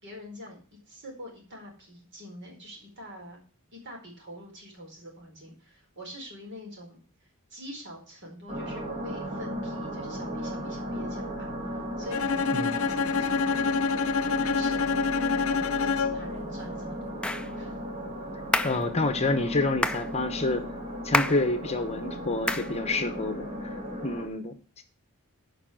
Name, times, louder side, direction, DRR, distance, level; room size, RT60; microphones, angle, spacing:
voice 1, 0.0-3.4 3.7-7.0 7.5-11.5 12.0-13.6 14.4-17.2 17.5-17.8, equal, 55° right, 0 dB, 4.4 m, -44 dB
sound 1, 8.5-24.3, equal, 35° right, 2.7 m, -36 dB
Bowed string instrument, 12.1-16.4, left 5 dB, 65° left, 0.7 m, -27 dB
sound 2, 17.2-17.5 18.5-18.8 19.8-20.1 21.1-21.5 22.5-22.7, left 1 dB, 5° left, 0.4 m, -27 dB
voice 2, 18.6-20.6 21.0-24.8, left 2 dB, 30° left, 9 dB, 1.0 m, -28 dB
9.0 x 5.5 x 7.7 m, 0.39 s
head